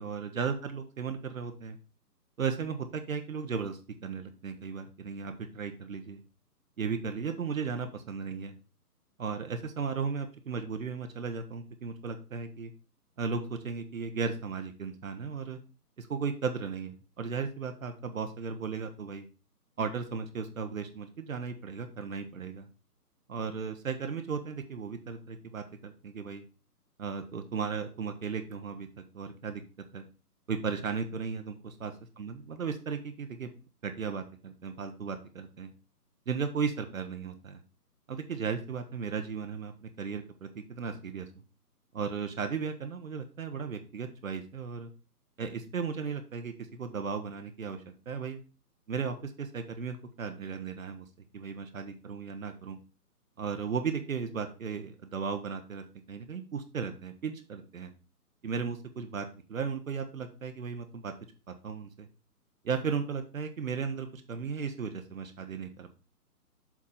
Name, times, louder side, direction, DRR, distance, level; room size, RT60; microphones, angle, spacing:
voice 1, 0.0-1.8 2.4-6.2 6.8-8.5 9.2-12.7 13.2-15.6 16.0-19.3 19.8-22.7 23.3-26.4 27.0-29.6 29.9-30.1 30.5-33.5 33.8-35.7 36.3-37.6 38.1-41.3 41.9-44.9 45.4-48.4 48.9-51.1 51.3-52.8 53.4-57.9 58.4-61.1 61.6-62.1 62.6-65.9, right 5 dB, 55° right, 6 dB, 1.0 m, -35 dB
7.2 x 3.6 x 5.6 m, 0.34 s
figure-of-eight pair, 135°, 48 cm